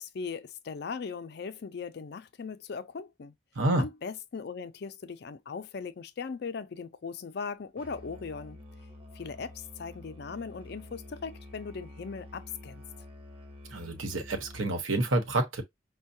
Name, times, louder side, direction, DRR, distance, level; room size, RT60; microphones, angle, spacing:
voice 1, 0.0-3.3 3.8-8.6 9.1-12.8, left 5 dB, 55° left, 0.4 m, -39 dB
voice 2, 3.6-3.9 13.7-15.6, right 2 dB, 85° right, 1.0 m, -28 dB
Musical instrument, 7.8-14.8, left 1 dB, 25° right, 0.7 m, -48 dB
5.4 x 2.2 x 2.6 m
head